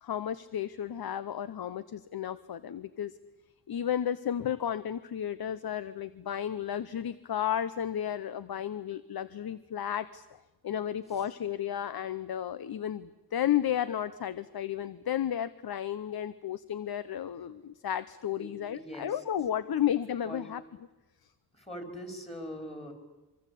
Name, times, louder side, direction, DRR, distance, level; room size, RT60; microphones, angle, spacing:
voice 1, 0.0-3.1 3.7-10.3 10.6-20.6, left 10 dB, 65° left, 15 dB, 0.8 m, -33 dB
voice 2, 18.4-19.2 20.2-20.5 21.5-22.9, equal, 15° left, 6 dB, 4.4 m, -42 dB
25.0 x 24.5 x 8.4 m, 1.1 s
wide cardioid pair, 130°, 39 cm